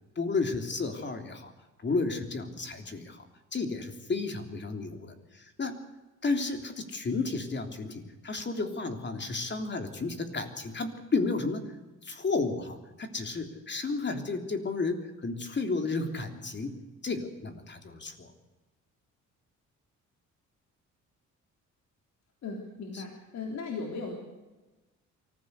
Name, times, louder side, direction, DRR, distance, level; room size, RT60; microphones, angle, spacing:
voice 1, 0.1-1.5 1.8-3.2 3.5-5.8 6.2-11.7 12.0-16.8 17.0-18.3 22.9-23.0, left 3 dB, 35° left, 6 dB, 3.3 m, -32 dB
voice 2, 22.4-24.1, left 4 dB, 65° left, 1 dB, 3.7 m, -37 dB
24.0 x 15.5 x 8.2 m, 1.1 s
cardioid pair, 90°, 30 cm